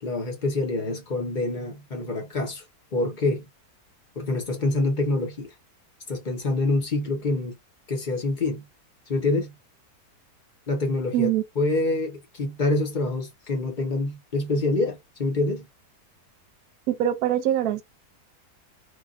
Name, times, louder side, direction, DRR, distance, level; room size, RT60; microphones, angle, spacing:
voice 1, 0.0-2.6 2.9-3.5 4.2-5.5 6.1-7.6 7.9-8.6 9.1-9.5 10.7-11.3 11.6-15.7, left 2 dB, 35° left, 0.8 m, -26 dB
voice 2, 11.1-11.4 16.9-17.8, right 12 dB, 75° right, 1.0 m, -23 dB
3.4 x 2.4 x 2.4 m
omnidirectional pair, 1.7 m